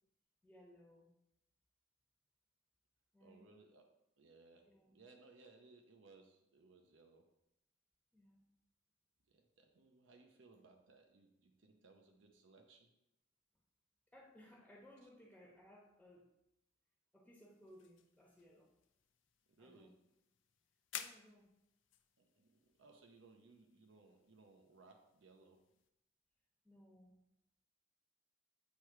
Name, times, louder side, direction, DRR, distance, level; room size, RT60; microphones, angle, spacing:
voice 1, 0.4-1.1 3.1-3.5 4.7-5.0 8.1-8.5 14.1-16.3 17.1-18.7 19.6-19.9 20.9-21.5 26.6-27.2, equal, 5° left, -4 dB, 1.0 m, -62 dB
voice 2, 3.2-7.3 9.3-12.9 15.0-15.1 19.5-20.0 22.2-25.6, right 3 dB, 80° right, 3 dB, 0.7 m, -64 dB
sound 1, 17.4-25.9, left 10 dB, 80° left, 0.5 m, -56 dB
8.3 x 3.2 x 4.7 m, 0.85 s
head